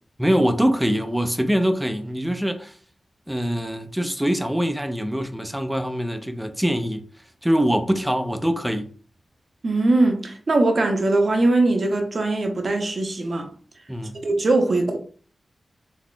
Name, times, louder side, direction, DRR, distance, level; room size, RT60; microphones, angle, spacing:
voice 1, 0.2-2.7 3.3-7.1 7.4-8.9 13.9-14.2, equal, 5° right, 0.5 m, -23 dB
voice 2, 9.6-13.5 14.2-15.0, right 2 dB, 60° right, 0.7 m, -21 dB
4.0 x 2.8 x 2.2 m
cardioid pair, 60°, 0 cm